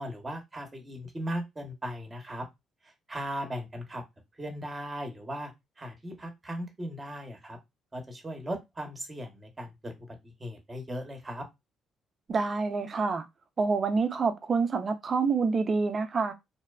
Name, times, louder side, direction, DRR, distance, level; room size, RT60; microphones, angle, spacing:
voice 1, 0.0-2.5 3.1-4.0 4.4-5.5 5.8-7.6 7.9-11.5, equal, 25° right, 1.0 m, -37 dB
voice 2, 12.3-13.3 13.6-16.3, right 4 dB, 45° right, 0.5 m, -27 dB
2.7 x 2.1 x 2.3 m
supercardioid pair, 60°, 0 cm